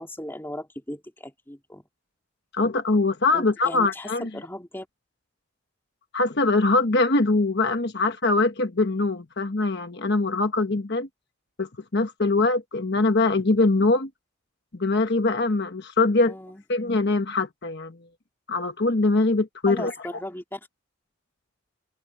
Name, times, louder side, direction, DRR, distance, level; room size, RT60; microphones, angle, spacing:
voice 1, 0.0-1.8 3.3-4.9 16.3-16.6 19.7-20.7, left 1 dB, 10° left, 2.5 m, -37 dB
voice 2, 2.5-4.3 6.1-11.1 11.6-14.1 14.7-16.3 16.7-18.0 18.5-20.2, left 3 dB, 55° left, 1.2 m, -23 dB
head